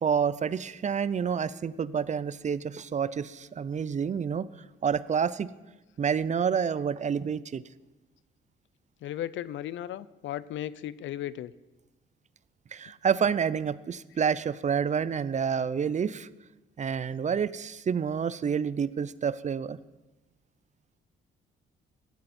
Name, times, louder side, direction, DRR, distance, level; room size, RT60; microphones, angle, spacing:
voice 1, 0.0-4.5 4.8-5.5 6.0-7.6 12.7-16.3 16.8-19.8, right 7 dB, 35° right, 17 dB, 0.6 m, -28 dB
voice 2, 9.0-11.5, left 12 dB, 75° left, 18 dB, 0.6 m, -35 dB
17.5 x 13.0 x 4.3 m, 1.1 s
cardioid pair, 90°, 20 cm